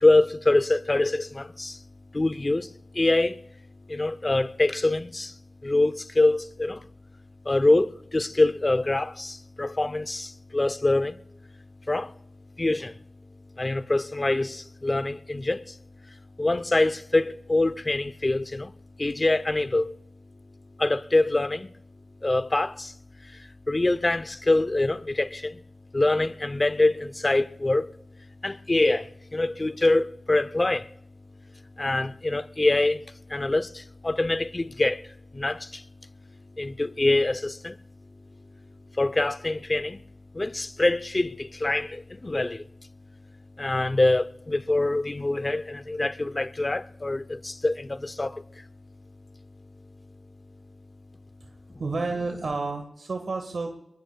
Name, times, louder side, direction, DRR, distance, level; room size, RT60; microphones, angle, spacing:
voice 1, 0.0-1.8 2.1-3.4 3.9-5.4 5.6-6.8 7.4-11.2 11.9-12.1 12.6-13.0 13.6-15.8 16.4-18.7 19.0-20.0 20.8-21.7 22.2-22.9 23.2-25.6 25.9-27.9 28.4-30.9 31.8-35.8 36.6-37.8 39.0-40.0 40.3-42.7 43.6-48.7, left 2 dB, 40° left, 0.6 m, -25 dB
voice 2, 51.4-53.7, right 3 dB, 80° right, 1.6 m, -31 dB
23.0 x 22.5 x 2.3 m
cardioid pair, 45°, 0 cm